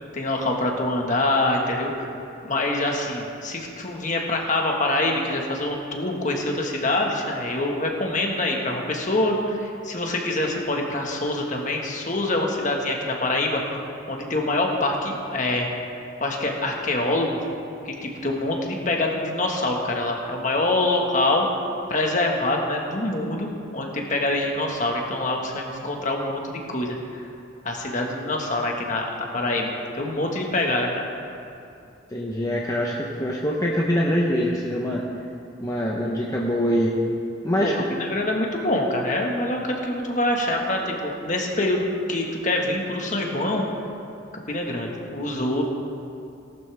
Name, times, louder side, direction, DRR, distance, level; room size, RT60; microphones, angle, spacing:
voice 1, 0.1-2.1 2.4-15.7 16.2-17.4 17.8-21.5 21.9-26.9 27.6-31.0 37.6-43.6 44.5-45.6, left 2 dB, 40° left, 1 dB, 1.6 m, -25 dB
voice 2, 32.1-35.0 35.6-37.0 37.4-37.7, equal, 15° left, -3 dB, 0.9 m, -24 dB
18.0 x 12.0 x 3.5 m, 2.7 s
head